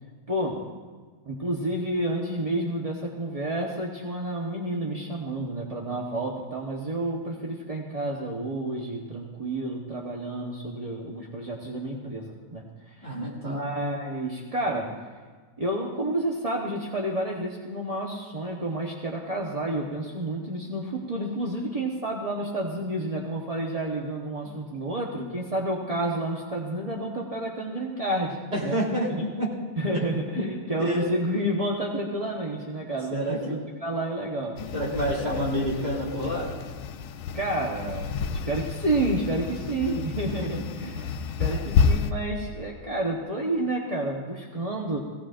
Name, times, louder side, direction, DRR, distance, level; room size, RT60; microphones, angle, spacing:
voice 1, 0.3-0.6 1.3-13.1 13.4-14.9 15.6-28.8 29.2-29.3 29.8-34.6 37.3-38.2 38.5-41.0 41.4-45.0, right 1 dB, 30° right, -2 dB, 0.6 m, -30 dB
voice 2, 13.0-13.6 24.4-24.6 28.5-29.1 29.4-29.5 30.4-30.5 30.8-31.1 33.1-33.6 34.7-36.5 40.2-40.5 40.8-40.9 41.5-41.6, equal, 50° right, -4 dB, 4.0 m, -28 dB
sound 1, 34.6-42.1, left 6 dB, 75° left, 1.5 m, -29 dB
18.0 x 17.0 x 2.5 m, 1.4 s
omnidirectional pair, 2.3 m